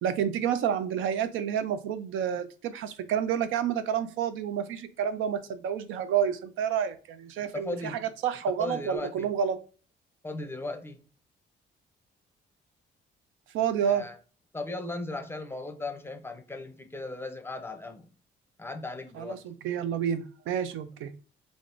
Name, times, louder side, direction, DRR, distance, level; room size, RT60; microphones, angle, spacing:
voice 1, 0.0-9.6 13.5-14.0 19.2-21.1, right 8 dB, 80° right, 0.4 m, -29 dB
voice 2, 7.5-8.0 8.6-9.3 10.2-11.0 13.8-14.2 14.5-18.1 18.6-19.4, left 2 dB, 10° left, 0.5 m, -37 dB
3.4 x 2.4 x 2.5 m
cardioid pair, 90°, 20 cm